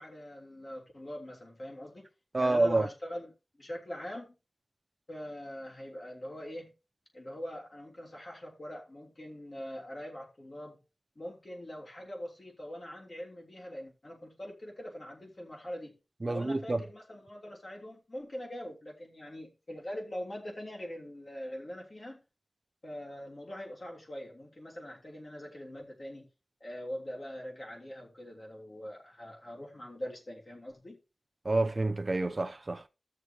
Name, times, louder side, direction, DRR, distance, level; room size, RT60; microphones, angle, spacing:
voice 1, 0.0-2.1 2.4-4.4 5.1-6.7 7.1-10.8 11.1-16.0 16.2-22.2 22.8-26.3 26.6-31.0, equal, 50° left, 3.2 m, -43 dB
voice 2, 2.3-2.9 16.2-16.8 31.4-32.9, right 2 dB, 45° right, 0.6 m, -28 dB
15.5 x 6.5 x 2.9 m
wide cardioid pair, 65°, 0 cm